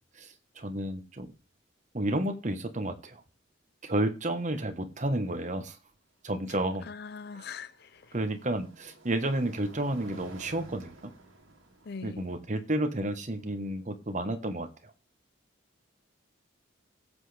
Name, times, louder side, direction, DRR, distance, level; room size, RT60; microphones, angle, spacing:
voice 1, 0.2-1.3 1.9-3.2 3.8-5.8 6.2-6.9 8.1-11.1 12.0-14.9, right 1 dB, 35° right, 1.3 m, -31 dB
sound 1, 0.6-0.7 1.0-1.4 3.3-3.4 6.4-14.5, right 2 dB, 70° right, 2.5 m, -54 dB
voice 2, 6.8-8.1 11.8-12.3, left 5 dB, 50° left, 0.5 m, -42 dB
18.0 x 8.2 x 3.4 m
head